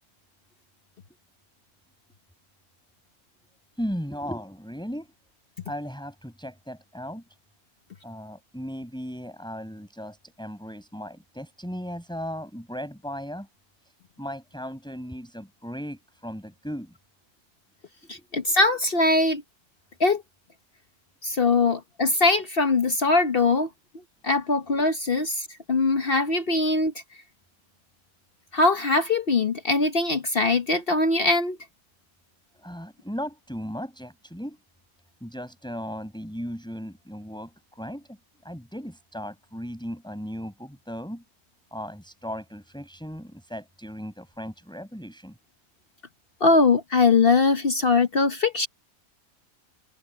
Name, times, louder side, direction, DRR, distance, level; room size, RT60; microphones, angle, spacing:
voice 1, 3.8-5.1 5.7-7.2 8.0-13.5 14.2-16.9 18.1-18.3 32.5-34.6 35.2-38.2 38.4-41.2 41.7-45.4, equal, 5° left, 7.4 m, -36 dB
voice 2, 18.1-19.4 20.0-20.2 21.2-23.7 24.2-26.9 28.5-31.6 46.4-48.7, left 3 dB, 45° left, 1.1 m, -21 dB
open air
omnidirectional pair, 1.5 m